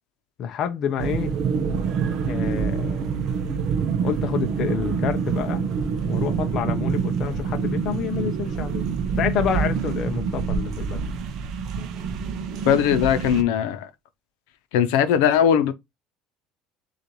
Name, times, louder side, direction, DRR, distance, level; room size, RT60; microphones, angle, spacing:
voice 1, 0.4-1.3 2.3-3.7 4.0-8.8 9.2-11.0, left 8 dB, 35° left, 0.5 m, -29 dB
sound 1, 1.0-13.4, right 6 dB, 45° right, 0.6 m, -26 dB
voice 2, 12.7-13.9 14.7-15.7, left 9 dB, 90° left, 0.6 m, -19 dB
6.5 x 2.4 x 3.0 m
cardioid pair, 175°, 0 cm